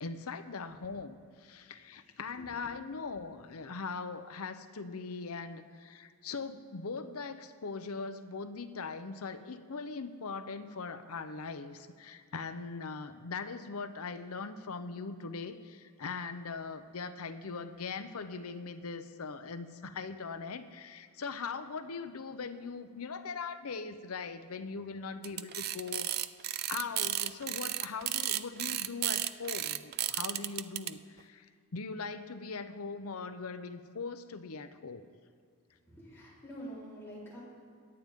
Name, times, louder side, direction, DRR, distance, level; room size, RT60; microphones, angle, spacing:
voice 1, 0.0-26.1 26.7-35.1, left 4 dB, 80° left, 10 dB, 0.7 m, -40 dB
sound 1, 25.2-30.9, right 13 dB, 45° right, 0.3 m, -33 dB
voice 2, 35.9-37.4, right 1 dB, 10° left, -8 dB, 3.9 m, -46 dB
23.0 x 9.0 x 3.6 m, 2.2 s
head